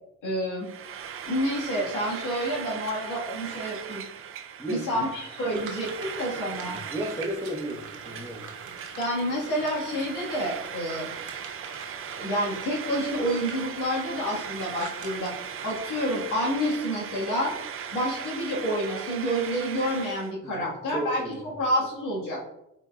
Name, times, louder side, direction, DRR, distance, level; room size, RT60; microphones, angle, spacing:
voice 1, 0.2-0.7 1.3-4.0 4.7-6.8 9.0-11.1 12.1-15.3 15.6-17.5 17.9-21.2 21.6-22.4, equal, 90° left, -4 dB, 1.6 m, -29 dB
Frying (food), 0.6-20.3, right 8 dB, 45° right, 0.5 m, -38 dB
voice 2, 4.6-5.1 6.7-8.4 20.4-21.5, right 1 dB, 10° left, -1 dB, 1.2 m, -34 dB
sound 1, 5.5-15.8, right 5 dB, 80° right, 1.0 m, -45 dB
5.5 x 3.9 x 2.3 m, 0.85 s
cardioid pair, 90°, 30 cm